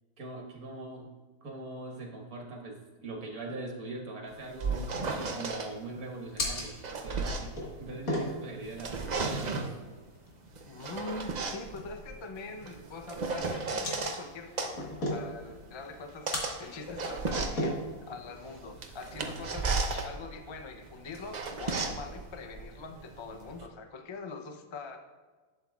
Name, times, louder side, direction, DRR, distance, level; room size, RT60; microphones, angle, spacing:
voice 1, 0.2-1.1 1.4-2.8 3.0-4.9 5.3-9.3 9.7-9.8, right 2 dB, 70° right, 0 dB, 1.9 m, -41 dB
sound 1, 4.3-5.7 6.5-8.3 8.7-9.8 10.6-14.2 14.6-23.7, right 3 dB, 50° right, 0.5 m, -35 dB
sound 2, 4.4-19.7, left 1 dB, 65° left, 2.1 m, -40 dB
voice 2, 10.6-17.8 18.1-25.0, left 3 dB, 50° left, 5 dB, 0.3 m, -43 dB
11.5 x 7.9 x 2.4 m, 1.3 s
omnidirectional pair, 1.6 m